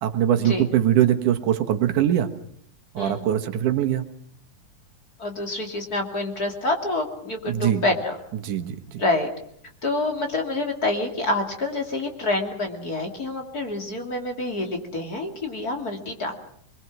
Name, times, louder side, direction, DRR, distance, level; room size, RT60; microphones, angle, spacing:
voice 1, 0.0-2.3 2.9-4.0 7.5-7.8 8.4-9.0, right 11 dB, 85° right, 7 dB, 2.9 m, -22 dB
voice 2, 3.0-3.3 5.2-8.2 9.0-9.3 9.8-16.3, left 2 dB, 30° left, 3 dB, 2.9 m, -27 dB
25.0 x 22.0 x 6.1 m, 0.66 s
omnidirectional pair, 3.4 m